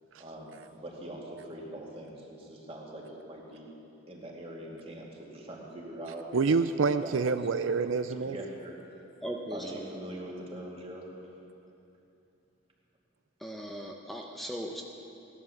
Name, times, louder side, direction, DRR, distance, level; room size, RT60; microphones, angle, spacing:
voice 1, 0.2-3.7 4.1-6.2 7.0-7.3 8.2-8.7 9.5-11.1, right 1 dB, 30° right, -2 dB, 2.5 m, -42 dB
voice 2, 6.3-8.4, right 4 dB, 80° right, 10 dB, 0.5 m, -27 dB
voice 3, 9.2-9.9 13.4-14.8, equal, ahead, 0 dB, 0.8 m, -38 dB
17.5 x 11.5 x 7.2 m, 2.8 s
head